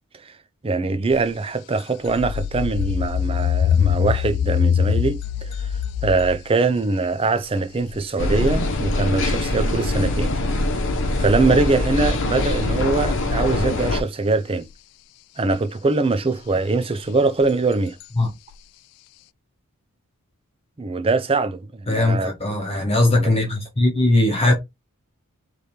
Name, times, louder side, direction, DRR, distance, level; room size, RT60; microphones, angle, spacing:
voice 1, 0.6-5.7 6.0-10.3 11.2-14.7 15.4-18.0 20.8-22.3 22.6-22.8 23.1-23.4, right 3 dB, 25° right, 0.5 m, -22 dB
sound 1, 1.1-1.2 1.8-6.5 7.6-8.0 10.2-10.3 17.4-17.5 18.0-18.1 18.5-18.6, left 8 dB, 85° left, 0.3 m, -23 dB
sound 2, 8.2-14.0, left 2 dB, 55° left, 0.9 m, -23 dB
voice 2, 21.9-24.5, left 2 dB, 25° left, 1.0 m, -19 dB
3.5 x 3.2 x 4.2 m
head